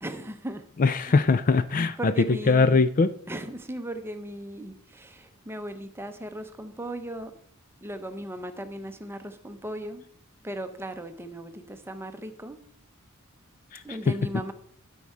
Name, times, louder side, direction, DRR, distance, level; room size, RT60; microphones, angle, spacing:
voice 1, 0.0-0.6 1.0-1.2 2.0-2.8 3.3-7.3 7.8-10.0 10.4-12.6 13.8-14.5, right 1 dB, 10° right, 7 dB, 0.8 m, -37 dB
voice 2, 0.8-2.1 2.5-3.1 13.7-14.1, left 4 dB, 40° left, 13 dB, 0.4 m, -21 dB
12.5 x 5.5 x 4.7 m, 0.63 s
head